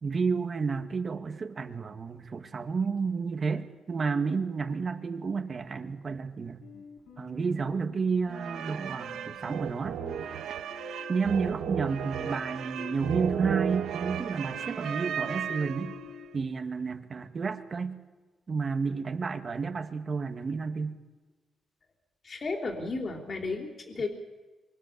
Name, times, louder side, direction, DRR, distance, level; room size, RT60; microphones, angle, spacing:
voice 1, 0.0-6.6 7.2-10.0 11.1-16.0 16.3-18.0 18.5-21.0, right 5 dB, 40° right, 7 dB, 2.1 m, -31 dB
sound 1, 6.6-16.5, left 7 dB, 85° left, 7.9 m, -49 dB
sound 2, 8.3-16.2, right 8 dB, 90° right, 1.4 m, -34 dB
voice 2, 22.2-24.1, left 3 dB, 40° left, 3 dB, 3.8 m, -33 dB
27.0 x 25.5 x 7.0 m, 1.3 s
cardioid pair, 120°, 0 cm